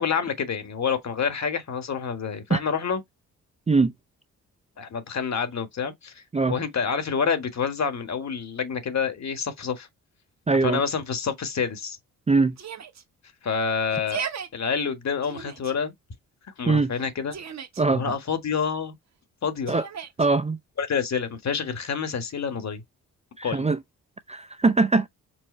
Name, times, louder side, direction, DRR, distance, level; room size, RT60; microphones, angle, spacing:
voice 1, 0.0-3.0 4.8-9.9 10.6-12.0 13.4-14.3 14.5-15.9 16.6-17.3 17.9-18.9 19.4-19.7 20.8-22.8 23.4-23.7, left 6 dB, 50° left, 1.3 m, -28 dB
voice 2, 10.5-10.8 12.3-12.6 16.7-16.9 17.8-18.0 19.7-19.9 20.2-20.6 23.4-23.8 24.3-25.1, right 3 dB, 20° right, 0.5 m, -21 dB
Yell, 12.6-13.0 13.9-14.5 15.2-15.7 16.9-17.8 19.7-20.3, right 7 dB, 45° right, 1.0 m, -36 dB
4.6 x 2.1 x 4.3 m
supercardioid pair, 55°, 36 cm